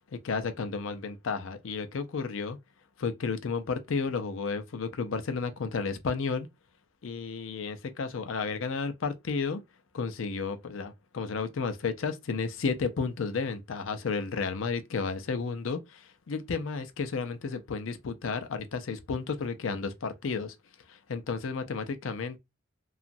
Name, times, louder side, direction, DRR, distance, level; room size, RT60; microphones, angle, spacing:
voice 1, 0.2-2.6 3.0-6.5 7.0-9.6 9.9-20.5 20.9-22.4, left 5 dB, 70° left, 0.5 m, -32 dB
2.9 x 2.4 x 2.6 m
head